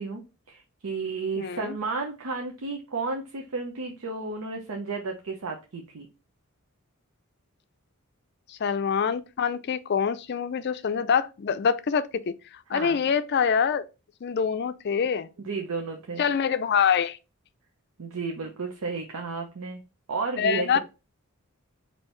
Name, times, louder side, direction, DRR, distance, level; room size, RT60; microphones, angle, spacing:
voice 1, 0.0-6.1 12.7-13.0 15.4-16.3 18.0-19.8 20.1-20.8, right 4 dB, 80° right, 0.6 m, -33 dB
voice 2, 1.4-1.7 8.5-12.3 12.7-13.8 14.2-15.3 16.2-17.2 20.4-20.8, left 6 dB, 50° left, 0.4 m, -25 dB
4.4 x 2.8 x 3.1 m
head